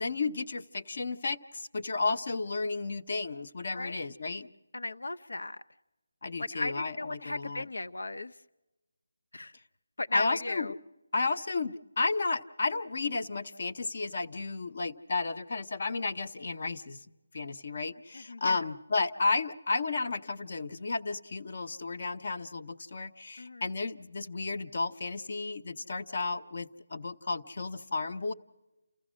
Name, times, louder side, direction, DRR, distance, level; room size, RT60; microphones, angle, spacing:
voice 1, 0.0-4.5 6.2-7.6 10.1-10.8 11.1-17.0 17.3-28.3, left 3 dB, 35° left, 8 dB, 0.7 m, -33 dB
voice 2, 3.7-4.1 4.7-5.6 6.4-8.4 9.3-9.6 10.0-10.7 18.1-18.6 23.4-23.7, left 2 dB, 90° left, 10 dB, 0.6 m, -36 dB
29.0 x 15.5 x 6.2 m, 1.0 s
figure-of-eight pair, 180°, 0 cm